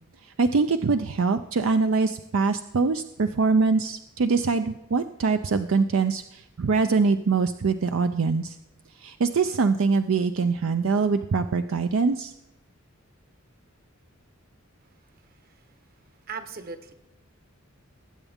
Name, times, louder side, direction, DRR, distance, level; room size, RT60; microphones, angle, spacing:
voice 1, 0.4-8.6 9.0-12.3, right 4 dB, 70° right, 9 dB, 0.5 m, -23 dB
voice 2, 16.3-16.9, right 5 dB, 45° right, 9 dB, 1.2 m, -37 dB
20.0 x 8.1 x 3.6 m, 0.94 s
head